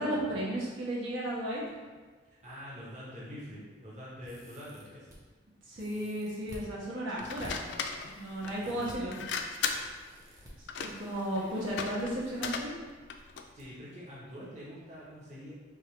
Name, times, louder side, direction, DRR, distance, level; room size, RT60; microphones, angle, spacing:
voice 1, 0.0-1.6 5.7-7.6 8.1-9.2 10.8-12.7, right 1 dB, 90° right, -6 dB, 1.3 m, -34 dB
voice 2, 2.2-5.1 8.7-9.1 10.2-10.5 11.4-11.7 13.5-15.5, equal, 35° right, -7 dB, 0.9 m, -46 dB
sound 1, 4.2-5.2 5.7-6.7 7.2-7.5 8.6-9.0 9.8-10.5 11.6-12.0 12.3-12.4 13.6-13.7 14.1-14.2, equal, 15° right, 0.6 m, -50 dB
sound 2, 7.2-13.5, left 6 dB, 65° left, 0.3 m, -38 dB
3.6 x 2.8 x 4.4 m, 1.4 s
head